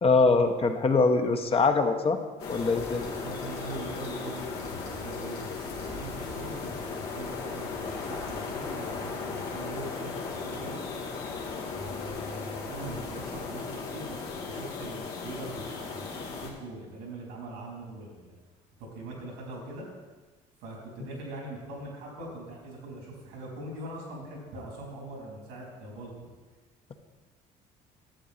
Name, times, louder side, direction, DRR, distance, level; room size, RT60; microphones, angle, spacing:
voice 1, 0.0-2.2 2.5-3.1, left 3 dB, 35° left, 5 dB, 1.0 m, -23 dB
sound 1, 2.4-16.5, left 4 dB, 75° left, 1.9 m, -36 dB
voice 2, 3.1-10.8 11.7-18.4 18.8-19.9 20.6-26.1, right 2 dB, 90° right, -2 dB, 3.4 m, -42 dB
11.5 x 7.5 x 4.2 m, 1.3 s
supercardioid pair, 80°, 17 cm